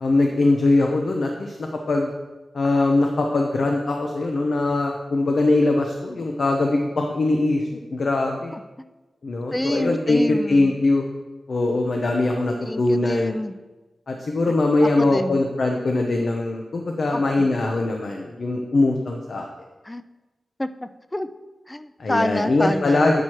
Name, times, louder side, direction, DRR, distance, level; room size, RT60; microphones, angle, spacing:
voice 1, 0.0-2.1 2.5-8.5 9.2-11.1 11.5-13.3 14.1-19.5 22.0-23.2, left 2 dB, 60° left, 2 dB, 0.6 m, -21 dB
voice 2, 9.5-10.7 12.6-13.5 14.5-14.6 14.8-15.4 17.1-17.5 19.8-20.0 20.6-21.3 21.7-23.2, left 1 dB, 15° left, 12 dB, 0.3 m, -28 dB
8.0 x 4.3 x 4.5 m, 1.2 s
wide cardioid pair, 100°, 0 cm